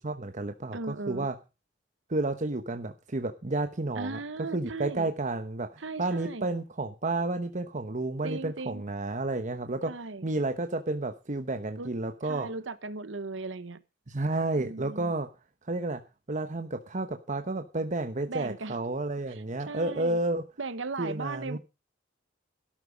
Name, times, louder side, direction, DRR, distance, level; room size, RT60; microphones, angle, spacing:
voice 1, 0.0-1.3 2.1-4.2 4.5-9.9 10.2-12.5 14.1-15.3 15.6-16.0 16.3-20.4 21.0-21.6, right 2 dB, 40° right, 7 dB, 1.1 m, -31 dB
voice 2, 0.7-1.3 4.0-5.1 5.8-6.5 8.2-8.8 9.9-10.3 11.8-11.9 12.2-13.8 14.6-15.1 18.3-18.8 19.3-20.2 20.6-21.6, right 3 dB, 85° right, 13 dB, 1.1 m, -37 dB
12.5 x 12.5 x 5.1 m, 0.30 s
head